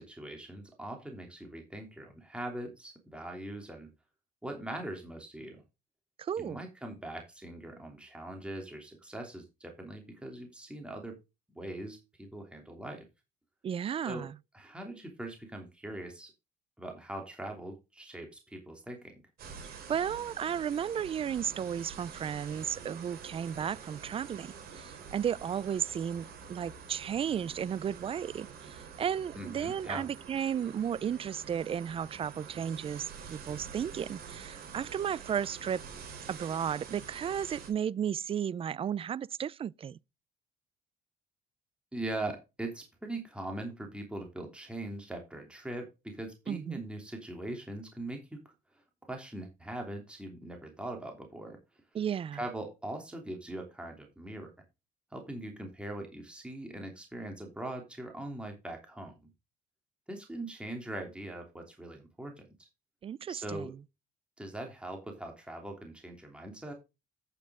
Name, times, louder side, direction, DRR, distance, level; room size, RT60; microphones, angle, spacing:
voice 1, 0.0-3.9 4.4-5.6 6.4-11.1 11.5-13.0 14.0-14.3 14.5-16.3 16.8-19.2 29.3-30.1 41.9-48.5 49.0-51.6 52.3-54.5 55.1-59.3 60.1-62.7 63.3-63.7 64.4-66.7, right 1 dB, 5° right, 3.1 m, -41 dB
voice 2, 6.2-6.6 13.6-14.3 19.9-35.8 36.3-40.0 46.5-46.8 51.9-52.4 63.0-63.7, right 8 dB, 35° right, 0.4 m, -34 dB
sound 1, 19.4-37.7, right 6 dB, 65° right, 3.7 m, -47 dB
9.1 x 8.5 x 3.7 m
cardioid pair, 110°, 17 cm